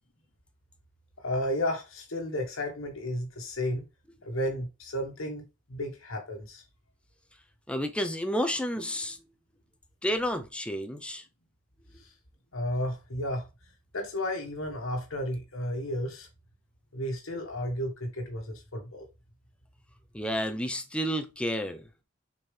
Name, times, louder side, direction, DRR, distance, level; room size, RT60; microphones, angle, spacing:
voice 1, 1.2-3.8 4.2-5.4 5.7-6.6 12.0-12.1 12.5-16.3 16.9-19.1, left 1 dB, 75° left, 1.4 m, -33 dB
voice 2, 7.7-9.2 10.0-11.3 20.1-21.9, equal, 5° left, 0.6 m, -30 dB
7.0 x 4.4 x 3.3 m
head